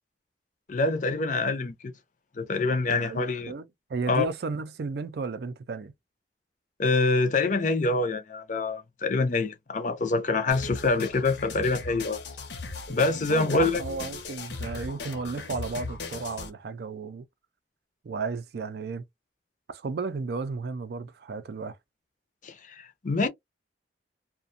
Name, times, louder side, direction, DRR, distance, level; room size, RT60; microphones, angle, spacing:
voice 1, 0.7-1.9 2.4-3.5 4.1-4.2 6.8-12.2 12.9-13.8 22.4-23.3, left 3 dB, 45° left, 0.5 m, -26 dB
voice 2, 2.9-5.9 13.3-17.3 18.0-19.0 19.7-21.8, right 4 dB, 60° right, 0.4 m, -34 dB
sound 1, 10.5-16.5, left 3 dB, 70° left, 0.7 m, -38 dB
2.4 x 2.1 x 2.5 m
head